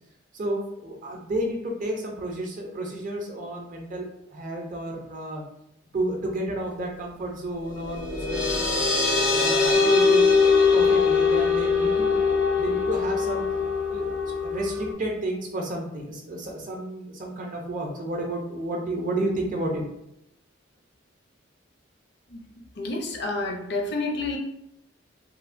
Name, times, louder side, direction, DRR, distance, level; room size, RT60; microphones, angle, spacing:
voice 1, 0.3-5.4 5.9-8.9 9.3-12.3 12.6-13.5 13.9-19.8, right 1 dB, 40° right, 1 dB, 0.5 m, -31 dB
sound 1, 7.8-14.9, left 4 dB, 90° left, 1.0 m, -22 dB
voice 2, 22.8-24.4, left 2 dB, 55° left, 2 dB, 0.5 m, -29 dB
3.1 x 2.1 x 2.5 m, 0.81 s
head